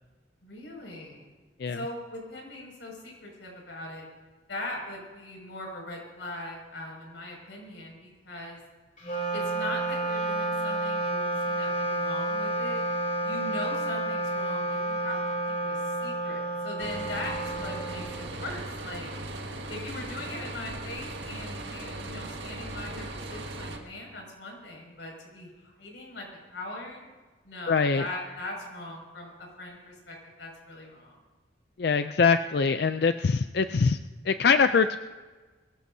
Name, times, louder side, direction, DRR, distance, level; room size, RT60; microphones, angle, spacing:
voice 1, 0.4-1.3 1.7-4.1 4.5-8.6 9.3-12.8 13.2-15.2 15.5-19.1 19.7-27.1 27.4-31.2, left 1 dB, 75° left, -1 dB, 6.0 m, -40 dB
Wind instrument woodwind instrument, 9.0-18.6, right 2 dB, 40° left, 2.9 m, -30 dB
sound 1, 16.8-23.8, right 2 dB, 70° right, 1.7 m, -38 dB
voice 2, 27.7-28.0 31.8-34.0 34.2-35.0, left 5 dB, 55° left, 9 dB, 0.4 m, -23 dB
22.0 x 18.5 x 2.8 m, 1.3 s
head